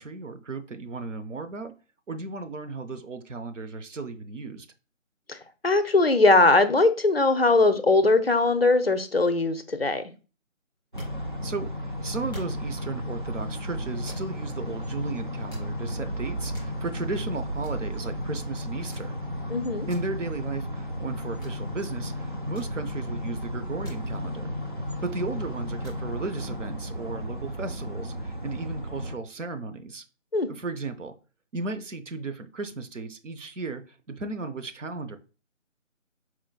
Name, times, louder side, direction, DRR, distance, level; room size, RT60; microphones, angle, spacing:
voice 1, 0.0-1.7 2.1-4.7 11.4-19.2 19.9-24.5 25.0-30.0 30.5-31.1 31.5-35.2, right 3 dB, 65° right, 0.7 m, -35 dB
voice 2, 5.6-10.0 19.5-19.9 30.3-30.5, left 2 dB, 50° left, 0.4 m, -20 dB
sound 1, 10.8-11.7 12.3-12.9 14.1-14.5 15.0-15.1 15.5-16.0 16.3-17.1 17.4-17.5 17.6-17.9 18.9-19.3 19.9-20.2 21.4-21.7 22.5-23.1 23.8-24.1 24.5-25.3 25.8-26.1, right 1 dB, 5° right, 1.6 m, -46 dB
sound 2, 10.9-29.1, equal, 40° right, 0.4 m, -34 dB
4.4 x 3.8 x 2.3 m
figure-of-eight pair, 160°, 40 cm